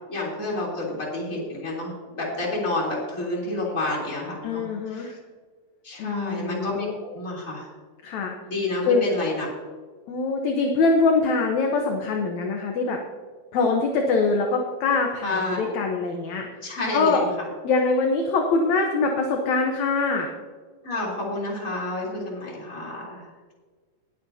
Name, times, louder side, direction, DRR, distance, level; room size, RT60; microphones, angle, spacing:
voice 1, 0.1-5.2 5.8-7.7 8.5-9.5 15.2-15.7 16.6-17.3 20.8-23.5, left 2 dB, 25° left, -4 dB, 3.6 m, -29 dB
voice 2, 4.4-5.1 6.0-6.9 8.0-8.3 8.8-9.1 10.1-13.0 13.5-16.5 16.9-17.2 17.6-20.3, left 4 dB, 65° left, 2 dB, 2.1 m, -23 dB
20.0 x 8.9 x 2.8 m, 1.4 s
omnidirectional pair, 3.9 m